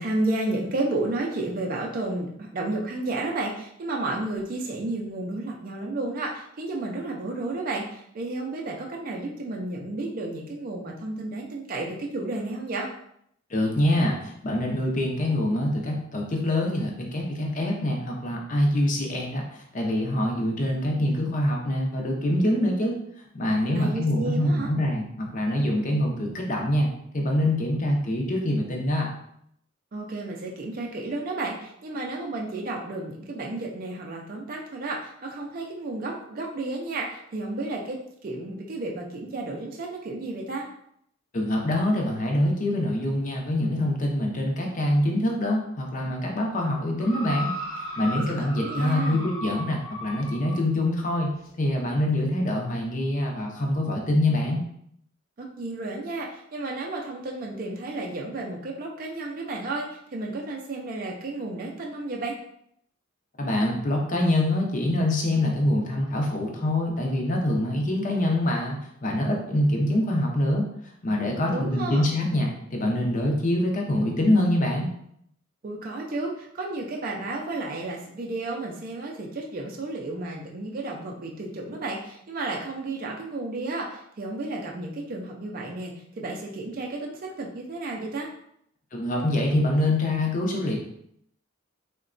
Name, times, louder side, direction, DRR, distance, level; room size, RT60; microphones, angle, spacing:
voice 1, 0.0-12.9 23.7-24.7 29.9-40.7 48.1-49.2 55.4-62.3 71.3-72.1 75.6-88.3, right 2 dB, 40° right, -1 dB, 0.4 m, -32 dB
voice 2, 13.5-23.0 23.3-29.1 41.3-47.5 48.0-54.6 63.4-70.6 71.0-74.9 88.9-90.8, left 1 dB, 35° left, 0 dB, 0.6 m, -25 dB
sound 1, 47.0-50.6 51.5-51.6, equal, 85° left, 0.8 m, -35 dB
3.8 x 2.1 x 2.5 m, 0.71 s
head